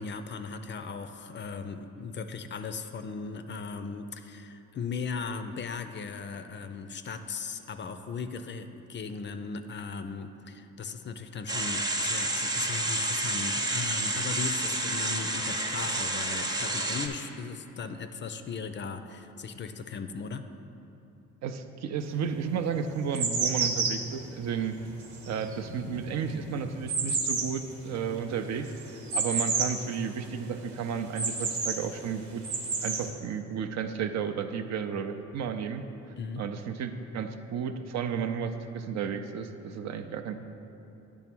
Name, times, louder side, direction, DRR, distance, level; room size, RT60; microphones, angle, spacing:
voice 1, 0.0-20.4 36.2-36.4, left 5 dB, 40° left, 8 dB, 0.4 m, -37 dB
sound 1, 11.5-17.1, right 1 dB, 15° right, 0.7 m, -30 dB
voice 2, 21.4-24.8 25.2-28.7 29.1-32.4 32.8-35.8 36.4-40.4, right 6 dB, 60° right, 7 dB, 0.5 m, -33 dB
sound 2, 22.0-22.1 22.7-29.9 30.2-30.3 30.6-31.8 32.3-33.1, right 4 dB, 80° right, 1.0 m, -31 dB
9.1 x 3.6 x 6.0 m, 2.9 s
cardioid pair, 90°, 30 cm